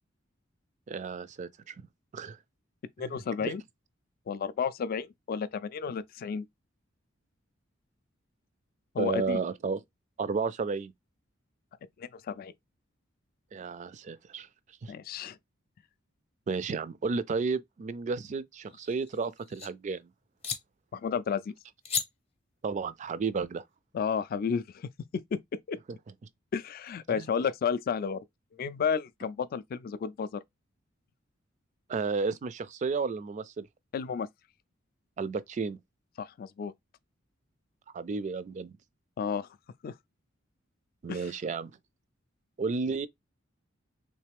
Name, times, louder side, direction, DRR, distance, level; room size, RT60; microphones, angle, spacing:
voice 1, 0.9-1.7 2.1-2.4 3.0-3.2 3.4-3.5 9.0-9.8 10.2-10.9 13.5-14.5 14.8-14.9 16.5-20.1 22.6-23.6 27.1-27.3 31.9-33.7 35.2-35.8 37.9-38.8 41.0-41.7 42.6-43.1, right 4 dB, 35° right, 0.3 m, -32 dB
voice 2, 3.0-3.6 4.3-6.5 8.9-9.4 12.0-12.5 14.9-15.4 20.9-21.5 23.9-24.9 25.3-25.4 25.7-25.8 26.5-28.2 28.5-30.4 33.9-34.3 36.2-36.7 39.2-39.5 39.8-39.9 41.1-41.3, left 6 dB, 50° left, 0.3 m, -32 dB
sound 1, 18.6-19.7 20.4-20.6 21.8-22.1, left 6 dB, 30° left, 0.7 m, -35 dB
3.2 x 3.0 x 3.4 m
head